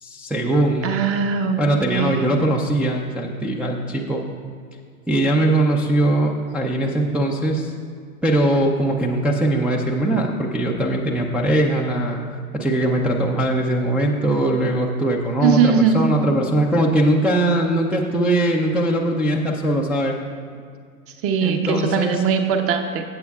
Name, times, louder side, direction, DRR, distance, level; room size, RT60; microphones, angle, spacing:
voice 1, 0.0-0.9 1.6-4.2 5.1-7.7 8.2-12.2 12.5-20.2 21.4-22.2, right 1 dB, 5° right, -3 dB, 0.4 m, -21 dB
voice 2, 0.8-1.6 1.9-2.3 15.4-16.0 21.2-23.0, right 6 dB, 30° right, 6 dB, 1.0 m, -20 dB
15.5 x 7.9 x 2.4 m, 2.1 s
hypercardioid pair, 105°, 44 cm